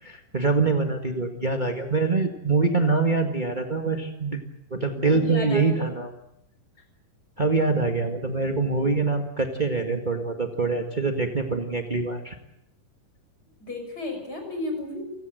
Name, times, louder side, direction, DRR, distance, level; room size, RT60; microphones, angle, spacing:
voice 1, 0.0-4.4 4.7-6.1 7.4-12.4, right 3 dB, 45° right, 4 dB, 0.5 m, -24 dB
voice 2, 4.9-6.0 13.6-15.1, left 2 dB, 25° left, 4 dB, 6.9 m, -34 dB
29.0 x 17.5 x 9.2 m, 0.77 s
omnidirectional pair, 4.3 m